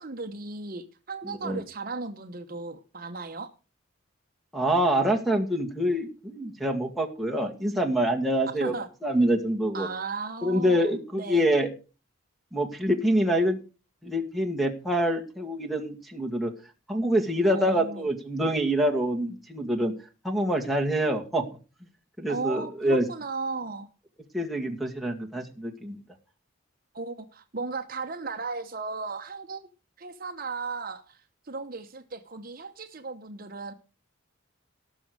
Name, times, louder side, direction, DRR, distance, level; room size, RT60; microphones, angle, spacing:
voice 1, 0.0-3.5 8.6-8.9 9.7-10.9 11.2-11.4 17.5-18.1 22.3-23.9 26.9-29.7 30.0-33.7, right 4 dB, 45° right, 0.9 m, -36 dB
voice 2, 1.2-1.6 4.5-8.7 9.0-9.9 10.4-11.7 12.5-13.6 14.0-16.5 16.9-19.9 20.2-21.4 22.2-23.1 24.3-26.0, right 1 dB, ahead, 2.0 m, -26 dB
18.0 x 6.3 x 6.2 m
head